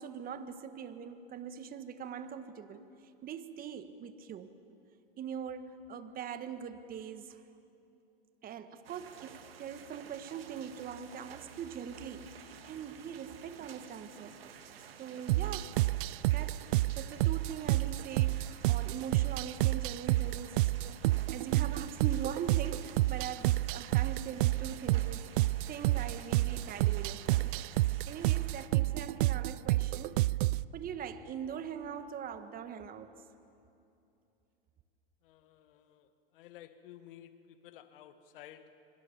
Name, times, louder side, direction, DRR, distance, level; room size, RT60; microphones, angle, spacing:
voice 1, 0.0-2.9 3.2-4.5 5.2-7.4 8.4-14.4 15.0-15.8 16.2-21.0 21.3-30.2 30.7-33.1, right 7 dB, 30° right, 10 dB, 1.5 m, -42 dB
sound 1, 8.8-28.7, right 8 dB, 85° right, 2.0 m, -52 dB
sound 2, 15.3-30.6, right 18 dB, 60° right, 0.5 m, -30 dB
voice 2, 35.2-38.9, left 11 dB, 65° left, 10 dB, 1.9 m, -54 dB
26.0 x 25.0 x 7.3 m, 2.7 s
hypercardioid pair, 110°, 29 cm